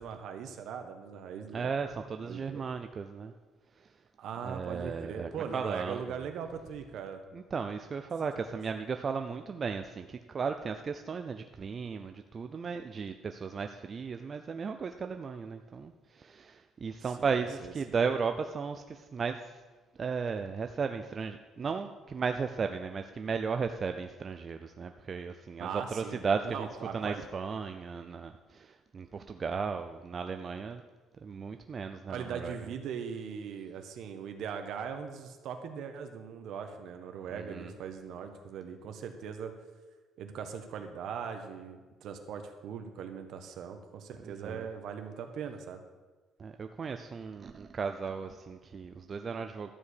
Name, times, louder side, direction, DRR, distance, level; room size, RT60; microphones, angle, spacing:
voice 1, 0.0-1.7 2.2-2.6 4.2-7.2 8.5-8.6 17.2-17.7 25.6-26.2 26.4-27.2 32.1-39.5 40.2-45.8, right 7 dB, 65° right, 6 dB, 1.3 m, -40 dB
voice 2, 1.5-3.3 4.4-6.1 7.3-19.6 20.0-30.8 31.2-32.7 37.3-37.7 44.2-44.6 46.4-49.7, right 5 dB, 30° right, 7 dB, 0.5 m, -35 dB
12.5 x 4.8 x 8.4 m, 1.3 s
cardioid pair, 140°, 0 cm